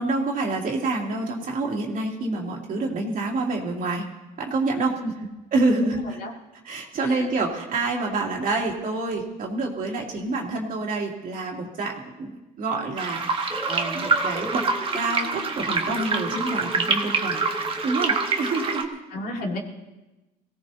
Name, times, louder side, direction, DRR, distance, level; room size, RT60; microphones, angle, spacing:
voice 1, 0.0-4.0 4.4-5.0 5.5-6.2 6.6-14.7 14.9-17.5 17.8-19.0, right 3 dB, 55° right, 0 dB, 2.9 m, -27 dB
voice 2, 5.8-6.3 7.0-7.3 19.1-19.6, left 1 dB, 65° left, -1 dB, 2.9 m, -32 dB
sound 1, 13.0-18.8, right 4 dB, 30° right, 1.5 m, -26 dB
sound 2, 13.5-18.8, equal, 5° left, 0.9 m, -38 dB
23.5 x 17.0 x 2.8 m, 1.1 s
cardioid pair, 110°, 17 cm